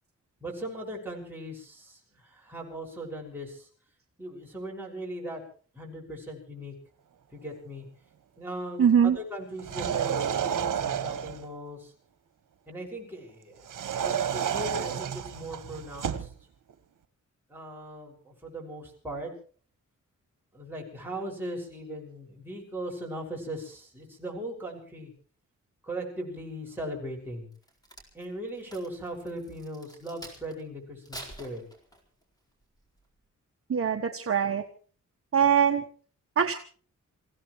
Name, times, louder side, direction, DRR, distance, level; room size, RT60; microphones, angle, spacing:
voice 1, 0.4-3.7 4.2-5.4 5.7-6.7 7.3-7.9 8.4-11.9 12.7-16.3 17.5-19.3 20.5-25.1 25.8-27.5 28.1-31.6, right 1 dB, 5° right, -3 dB, 6.2 m, -39 dB
voice 2, 8.8-9.2 33.7-34.6 35.3-35.8 36.4-36.6, right 7 dB, 45° right, 4 dB, 1.2 m, -22 dB
sound 1, 9.6-11.5 13.7-16.3, right 8 dB, 80° right, 1.3 m, -30 dB
Crack, 27.6-30.6 31.0-32.2 32.8-33.0, right 1 dB, 10° left, 4.4 m, -46 dB
28.0 x 16.0 x 3.2 m, 0.43 s
wide cardioid pair, 155°, 31 cm